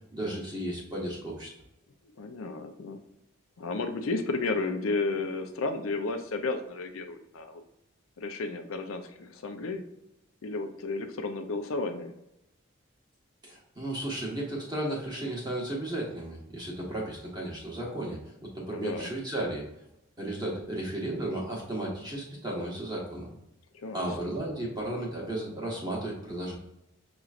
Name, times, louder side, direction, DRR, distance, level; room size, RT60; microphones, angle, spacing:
voice 1, 0.1-1.5 13.4-18.2 18.5-19.6 20.2-23.3 23.9-26.6, right 1 dB, 20° right, -3 dB, 1.3 m, -34 dB
voice 2, 2.1-3.0 3.6-7.6 8.2-9.8 10.4-12.1 18.7-19.1 23.7-24.1, left 3 dB, 80° left, 6 dB, 0.6 m, -33 dB
6.1 x 3.0 x 2.5 m, 0.84 s
head